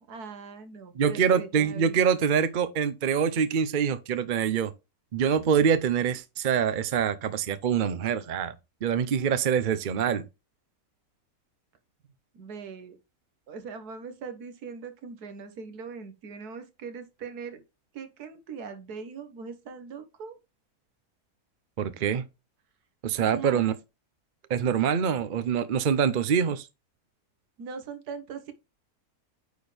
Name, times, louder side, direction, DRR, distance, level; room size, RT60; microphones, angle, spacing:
voice 1, 0.1-2.0 12.3-13.0 13.5-17.6 17.9-20.4 23.2-23.7 27.6-28.5, right 5 dB, 80° right, 1.7 m, -41 dB
voice 2, 1.0-4.7 5.1-8.5 8.8-10.2 21.8-22.2 23.0-23.7 24.5-26.7, right 7 dB, 55° right, 0.5 m, -25 dB
9.4 x 4.4 x 3.3 m
omnidirectional pair, 1.6 m